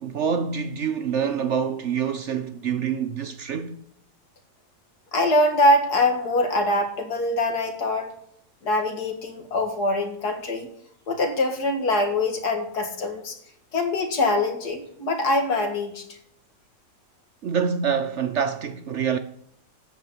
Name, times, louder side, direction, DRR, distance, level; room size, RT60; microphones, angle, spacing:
voice 1, 0.0-3.8 17.4-19.2, right 7 dB, 60° right, 0.8 m, -26 dB
voice 2, 5.1-8.1 8.6-10.7 11.1-13.4 13.7-16.0, left 2 dB, 65° left, 2.3 m, -23 dB
13.5 x 5.0 x 8.8 m
omnidirectional pair, 1.8 m